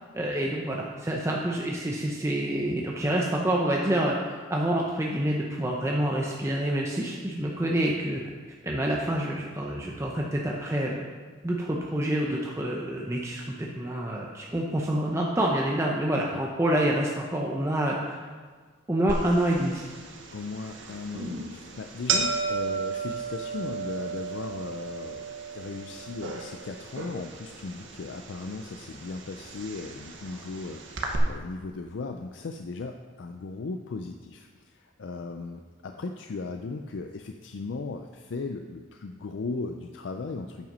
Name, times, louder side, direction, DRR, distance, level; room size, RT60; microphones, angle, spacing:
voice 1, 0.1-4.2 4.5-8.2 8.6-11.0 11.4-18.2 18.9-19.9, right 1 dB, 15° right, -2 dB, 0.7 m, -27 dB
sound 1, 19.1-31.2, right 4 dB, 75° right, 1.1 m, -35 dB
voice 2, 20.3-40.7, left 3 dB, 70° left, 5 dB, 0.4 m, -37 dB
9.0 x 5.7 x 5.4 m, 1.5 s
head